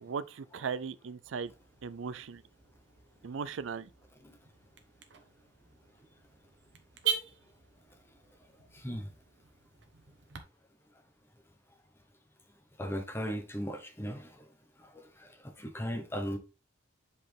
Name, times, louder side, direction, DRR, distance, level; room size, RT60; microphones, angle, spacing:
voice 1, 0.0-1.5 1.8-2.4 3.2-3.9, right 6 dB, 80° right, 0.5 m, -37 dB
Car / Alarm, 1.2-10.4, right 8 dB, 65° right, 1.0 m, -43 dB
voice 2, 8.7-9.1 12.8-14.5 14.8-16.4, equal, 10° left, 1.0 m, -38 dB
7.6 x 4.2 x 3.4 m
head